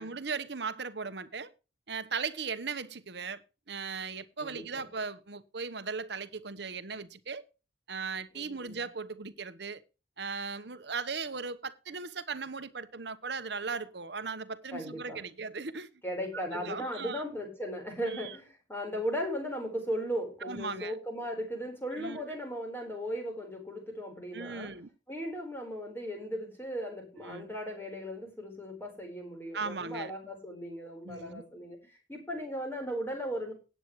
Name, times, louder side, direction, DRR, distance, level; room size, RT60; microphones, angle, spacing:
voice 1, 0.0-1.5 1.9-3.4 3.7-7.4 7.9-9.8 10.2-15.9 16.3-17.2 18.1-18.4 20.4-21.0 22.0-22.4 24.3-24.9 27.2-27.5 29.5-30.1 31.0-31.4, right 5 dB, 60° right, 1.1 m, -38 dB
voice 2, 4.4-4.9 8.3-8.8 14.7-15.2 16.0-24.7 25.1-33.5, equal, 10° left, 4.2 m, -37 dB
17.0 x 9.1 x 3.1 m
head